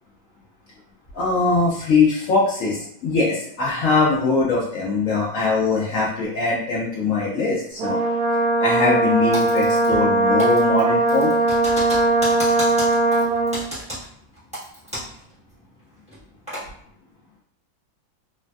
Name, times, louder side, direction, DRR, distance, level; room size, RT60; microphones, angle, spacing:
voice 1, 1.1-8.0 8.6-11.3, left 3 dB, 90° left, -5 dB, 0.7 m, -21 dB
Brass instrument, 7.8-13.6, right 2 dB, 85° right, 0.7 m, -19 dB
Typing, 9.3-10.1 10.4-15.2 15.5-15.6 16.1-16.7, equal, 5° right, 0.9 m, -33 dB
3.2 x 2.5 x 2.2 m, 0.65 s
omnidirectional pair, 2.1 m